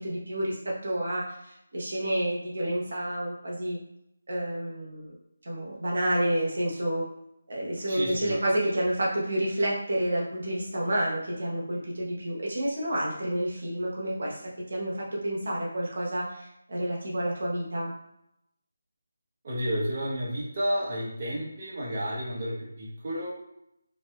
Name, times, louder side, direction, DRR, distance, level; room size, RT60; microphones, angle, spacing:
voice 1, 0.0-3.8 4.3-5.1 5.4-7.0 7.5-14.4 14.7-17.9, right 1 dB, 70° right, -4 dB, 0.9 m, -29 dB
voice 2, 7.9-8.4 19.4-23.3, equal, 35° right, -6 dB, 1.0 m, -31 dB
3.3 x 2.7 x 2.2 m, 0.82 s
figure-of-eight pair, 165°, 0 cm